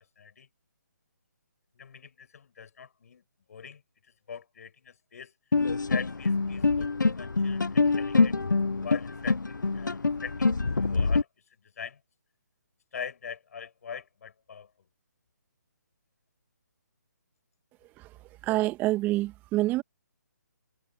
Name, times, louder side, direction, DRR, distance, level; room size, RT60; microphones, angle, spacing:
voice 1, 0.2-0.5 1.7-3.2 3.5-5.3 5.9-8.4 8.8-11.3 11.6-12.0 12.9-14.7, left 7 dB, 55° left, 6.6 m, -42 dB
sound 1, 5.5-11.2, left 3 dB, 85° left, 1.0 m, -25 dB
voice 2, 18.4-19.8, right 17 dB, 15° right, 2.3 m, -27 dB
figure-of-eight pair, 150°, 10 cm